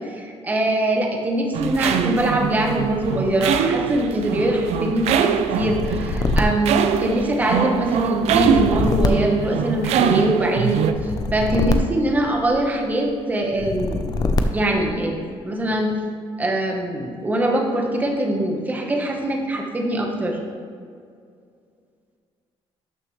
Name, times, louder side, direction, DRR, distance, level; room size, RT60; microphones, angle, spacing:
voice 1, 0.1-14.0 14.5-15.9 16.4-20.4, right 1 dB, 15° right, 1 dB, 1.1 m, -23 dB
sound 1, 1.5-10.9, right 8 dB, 85° right, 0.5 m, -23 dB
sound 2, 5.5-7.5 8.2-10.1 10.9-12.8 13.5-14.9, left 3 dB, 35° left, 0.6 m, -24 dB
12.0 x 6.4 x 3.2 m, 2.2 s
cardioid pair, 165°, 11 cm